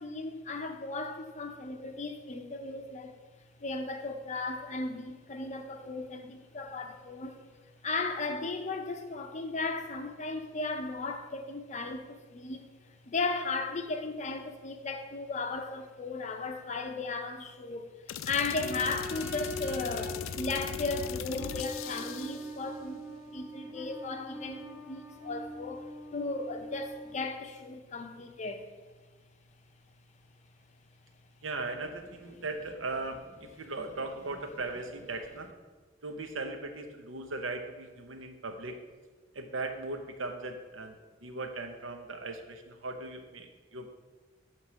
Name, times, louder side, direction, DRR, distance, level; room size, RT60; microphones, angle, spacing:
voice 1, 0.0-3.1 3.6-7.4 7.8-12.7 13.1-28.7, left 3 dB, 35° left, 0.6 m, -36 dB
sound 1, 18.1-22.5, left 8 dB, 85° left, 0.3 m, -39 dB
sound 2, 18.6-27.2, left 1 dB, 5° right, 0.8 m, -42 dB
voice 2, 31.4-35.5 36.0-38.8 39.3-43.9, right 3 dB, 80° right, 0.8 m, -38 dB
8.6 x 3.1 x 6.2 m
head